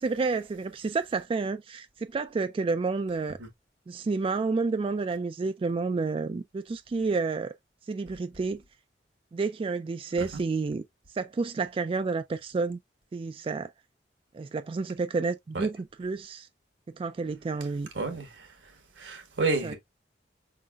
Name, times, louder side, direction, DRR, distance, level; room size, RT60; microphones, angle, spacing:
voice 1, 0.0-3.4 3.9-7.5 7.9-8.6 9.3-10.8 11.1-12.8 13.1-13.7 14.3-16.5 17.0-17.9 19.6-19.7, right 4 dB, 30° right, 0.3 m, -30 dB
voice 2, 17.9-18.5 19.0-19.7, right 3 dB, 85° right, 1.5 m, -30 dB
5.6 x 3.9 x 2.3 m
head